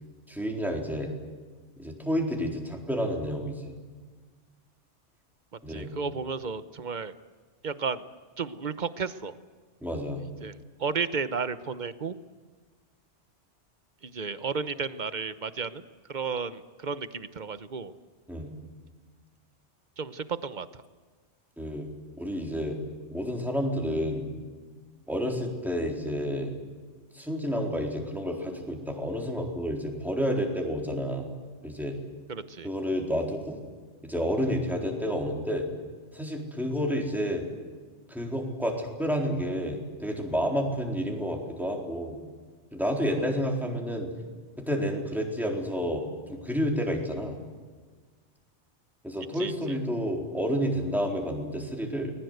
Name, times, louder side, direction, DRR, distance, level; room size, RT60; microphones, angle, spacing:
voice 1, 0.3-1.1 1.8-3.8 5.6-5.9 9.8-10.2 18.3-18.5 21.6-21.9 22.2-22.8 23.1-24.3 25.1-26.5 27.1-31.3 31.6-32.0 32.6-33.6 34.0-35.6 36.1-37.4 38.1-42.2 42.7-44.1 44.6-46.0 46.3-47.4 49.0-52.1, equal, ahead, 0 dB, 4.1 m, -30 dB
voice 2, 5.7-7.1 7.6-8.0 8.4-9.3 10.4-12.1 14.0-15.8 16.1-17.9 20.0-20.7 32.3-32.7 49.4-49.5, right 5 dB, 40° right, 13 dB, 1.1 m, -33 dB
30.0 x 20.5 x 8.1 m, 1.5 s
omnidirectional pair, 1.2 m